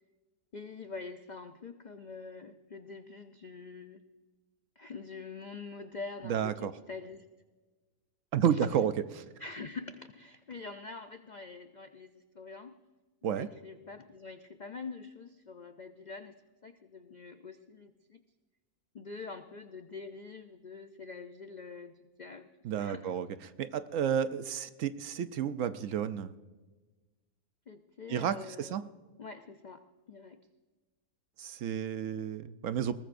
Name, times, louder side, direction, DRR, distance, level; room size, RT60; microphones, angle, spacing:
voice 1, 0.5-4.0 4.8-7.3 8.5-8.7 9.4-12.8 13.2-16.4 16.6-18.2 18.9-22.5 22.8-23.2 27.7-28.7 29.2-30.4, left 4 dB, 75° left, 8 dB, 0.4 m, -45 dB
voice 2, 6.2-6.7 8.3-9.2 13.2-13.5 22.6-23.3 23.6-26.3 28.1-28.8 31.4-32.9, right 8 dB, 65° right, 12 dB, 0.9 m, -31 dB
21.0 x 19.0 x 2.6 m, 1.3 s
omnidirectional pair, 1.6 m